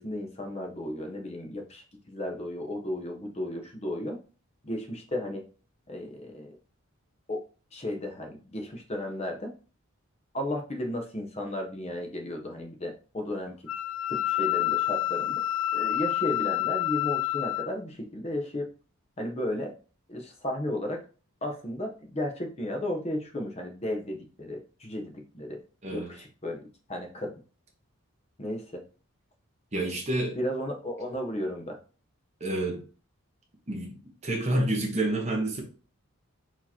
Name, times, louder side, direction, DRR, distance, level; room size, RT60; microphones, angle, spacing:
voice 1, 0.0-4.2 4.6-5.4 5.9-6.6 7.3-7.4 7.7-9.5 10.3-13.5 14.1-15.4 15.7-18.7 19.2-19.7 20.1-21.0 21.4-25.6 25.9-27.3 28.4-28.8 30.3-31.8, left 1 dB, 30° left, 0.8 m, -34 dB
Wind instrument woodwind instrument, 13.7-17.7, left 15 dB, 75° left, 0.3 m, -28 dB
voice 2, 25.8-26.1 29.7-30.4 32.4-32.8 33.7-35.6, right 1 dB, 30° right, 1.2 m, -29 dB
4.7 x 3.9 x 2.8 m
head